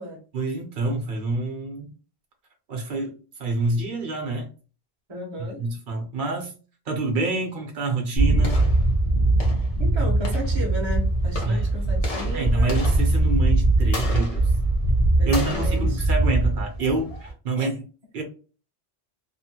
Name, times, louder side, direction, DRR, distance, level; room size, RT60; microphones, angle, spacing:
voice 1, 0.3-1.9 2.7-3.1 3.4-4.5 5.6-6.5 6.9-8.6 11.4-11.6 12.3-14.5 15.3-17.7 18.1-18.2, right 2 dB, 55° right, 2 dB, 0.9 m, -27 dB
voice 2, 5.1-5.6 8.3-8.5 9.8-12.7 15.2-16.1 17.6-17.7, equal, 30° right, -1 dB, 0.8 m, -34 dB
sound 1, 8.2-17.3, right 2 dB, 40° left, 0.8 m, -21 dB
2.9 x 2.1 x 2.8 m, 0.36 s
omnidirectional pair, 1.1 m